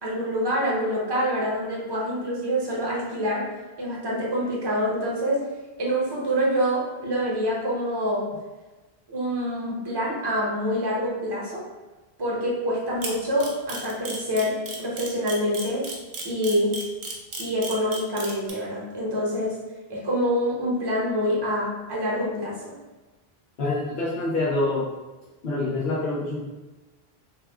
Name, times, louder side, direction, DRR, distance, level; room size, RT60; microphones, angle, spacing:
voice 1, 0.0-3.4 3.8-5.5 5.8-8.2 9.1-11.6 12.2-15.8 16.2-16.8 17.4-19.5 19.9-22.6, equal, 25° right, -4 dB, 0.7 m, -26 dB
Camera, 13.0-18.5, right 3 dB, 70° right, 0.9 m, -34 dB
voice 2, 23.6-24.9 25.4-26.5, left 2 dB, 80° left, -6 dB, 0.9 m, -26 dB
3.0 x 2.3 x 3.3 m, 1.1 s
omnidirectional pair, 1.1 m